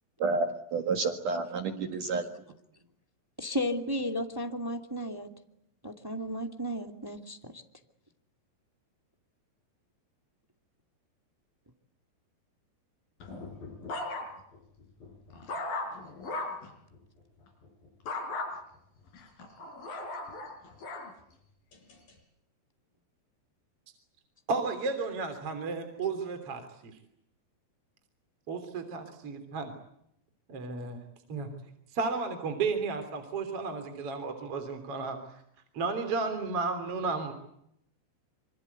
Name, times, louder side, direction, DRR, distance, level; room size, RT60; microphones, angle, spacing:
voice 1, 0.2-2.2, right 4 dB, 55° right, 6 dB, 2.8 m, -30 dB
voice 2, 3.4-5.3 5.8-7.6, equal, 15° right, 5 dB, 0.7 m, -34 dB
sound 1, 13.2-14.6 15.0-16.7 18.1-18.5 19.1-21.1 21.7-22.1, left 2 dB, 55° left, 6.3 m, -37 dB
voice 3, 24.5-26.9 28.5-29.7 30.5-31.0 31.3-31.5 31.9-35.2 35.7-37.3, right 4 dB, 35° right, 7 dB, 3.7 m, -33 dB
26.5 x 26.0 x 8.3 m, 0.77 s
omnidirectional pair, 5.0 m